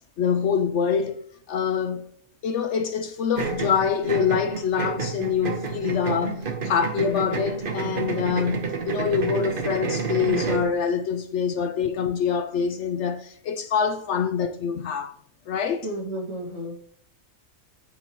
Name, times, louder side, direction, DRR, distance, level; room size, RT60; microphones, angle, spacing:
voice 1, 0.2-2.1 2.4-15.2 15.5-15.9, left 7 dB, 65° left, 0.8 m, -25 dB
sound 1, 3.4-10.7, right 5 dB, 45° right, 1.0 m, -30 dB
voice 2, 15.8-16.7, right 1 dB, 60° right, 2.5 m, -32 dB
9.2 x 5.7 x 3.0 m
omnidirectional pair, 1.4 m